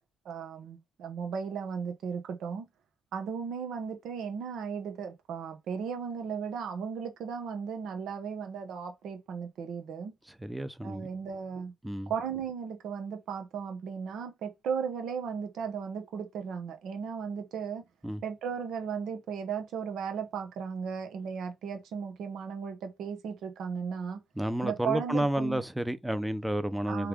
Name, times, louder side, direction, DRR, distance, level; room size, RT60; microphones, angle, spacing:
voice 1, 0.2-2.7 3.1-10.1 10.8-11.7 12.1-17.8 18.2-24.2 24.6-25.6 26.9-27.1, right 6 dB, 75° right, 1.1 m, -36 dB
voice 2, 10.4-11.1 11.8-12.1 18.0-18.2 24.4-27.1, right 1 dB, 5° right, 0.6 m, -31 dB
3.4 x 3.3 x 3.5 m
cardioid pair, 90°, 0 cm